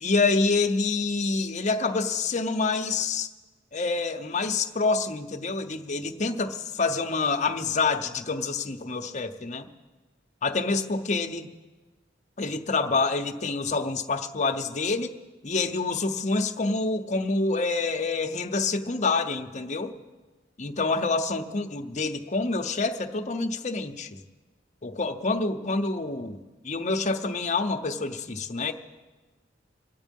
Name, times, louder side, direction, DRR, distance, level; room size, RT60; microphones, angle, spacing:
voice 1, 0.0-3.3 3.7-9.7 10.4-11.5 12.4-15.1 15.4-20.0 20.6-24.2 24.8-28.7, left 3 dB, 40° left, 4 dB, 0.8 m, -27 dB
25.0 x 8.4 x 5.3 m, 1.3 s
head